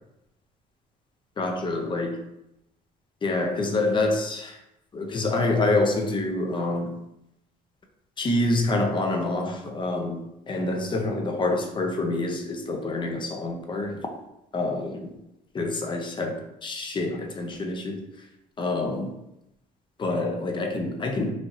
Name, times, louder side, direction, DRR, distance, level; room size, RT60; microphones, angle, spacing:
voice 1, 1.4-2.2 3.2-4.6 4.9-7.0 8.2-14.1 14.5-15.1 15.5-18.1 18.6-19.1 20.0-21.3, left 2 dB, 30° left, 3 dB, 0.5 m, -27 dB
3.1 x 2.7 x 2.4 m, 0.87 s
cardioid pair, 110°, 17 cm